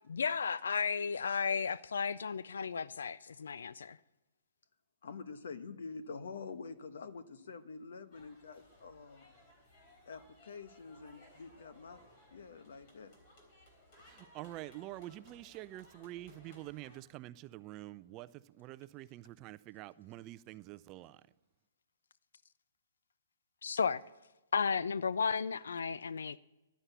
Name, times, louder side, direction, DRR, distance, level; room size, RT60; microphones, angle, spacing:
voice 1, 0.1-4.0 23.6-24.0 24.5-26.4, left 5 dB, 90° left, 0.4 m, -34 dB
voice 2, 5.0-9.3 10.1-13.1, left 4 dB, 75° left, 1.1 m, -47 dB
sound 1, 8.1-17.0, left 1 dB, 35° left, 3.6 m, -62 dB
voice 3, 14.1-21.2, right 15 dB, 25° right, 0.4 m, -47 dB
11.5 x 9.9 x 8.2 m
hypercardioid pair, 160°, 0 cm